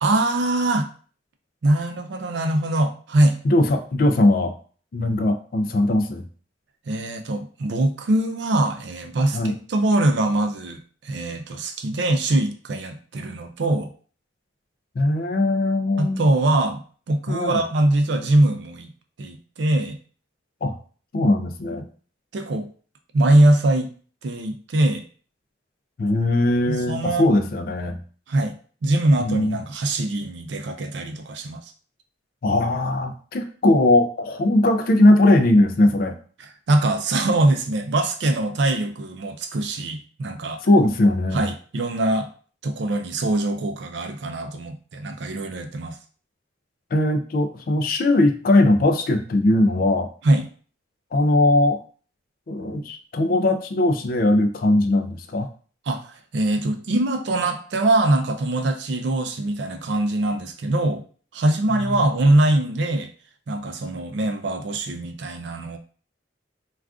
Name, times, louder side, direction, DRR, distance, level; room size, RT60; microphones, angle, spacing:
voice 1, 0.0-0.9 1.6-3.4 6.9-13.9 16.0-18.9 19.2-20.0 22.3-22.7 23.1-23.9 24.2-25.0 26.7-27.3 28.3-28.6 28.8-31.6 36.7-40.6 41.3-42.3 42.6-46.0 50.2-50.4 55.9-61.0 61.3-63.1 63.5-65.8, right 1 dB, 65° right, 5 dB, 0.4 m, -22 dB
voice 2, 3.4-4.6 4.9-6.3 9.3-9.6 15.0-16.3 17.3-17.6 20.6-20.8 21.1-21.8 26.0-28.0 29.2-29.6 32.4-36.2 40.6-41.5 46.9-50.1 51.1-51.8 52.5-55.5 61.7-62.0, left 1 dB, 50° left, 7 dB, 0.3 m, -20 dB
2.4 x 2.4 x 3.4 m, 0.42 s
head